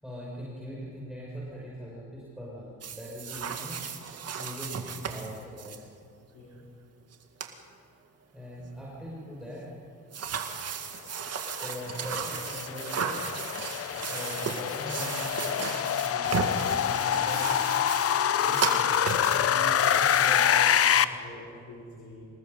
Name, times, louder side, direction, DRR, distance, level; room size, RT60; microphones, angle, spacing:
voice 1, 0.0-3.8 4.3-5.7 8.3-9.7 11.6-13.2 13.8-17.6 18.3-18.6 19.3-20.4, equal, ahead, -6 dB, 6.6 m, -41 dB
sound 1, 2.8-5.8 7.1-7.2 7.4-7.5 10.1-20.9, right 6 dB, 55° right, 2.1 m, -35 dB
sound 2, 11.5-21.0, left 9 dB, 50° left, 0.8 m, -26 dB
voice 2, 18.5-19.3 19.8-22.3, left 2 dB, 75° left, -3 dB, 4.5 m, -43 dB
26.5 x 19.5 x 5.6 m, 2.4 s
cardioid pair, 90°, 30 cm